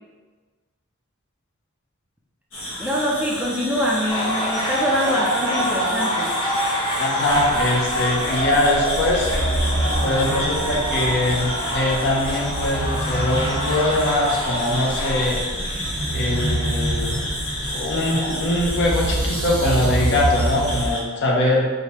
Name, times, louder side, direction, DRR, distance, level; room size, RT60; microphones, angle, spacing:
sound 1, 2.5-21.0, equal, 85° left, 1.4 m, -31 dB
voice 1, 2.8-6.3, equal, 5° right, -4 dB, 0.5 m, -24 dB
sound 2, 4.1-15.3, equal, 25° left, 0.8 m, -26 dB
voice 2, 7.0-9.3 10.0-15.4 16.1-17.2 17.7-21.7, left 1 dB, 60° left, -2 dB, 0.8 m, -22 dB
sound 3, 7.3-20.9, right 1 dB, 75° right, 0.9 m, -27 dB
5.0 x 2.8 x 3.1 m, 1.4 s
head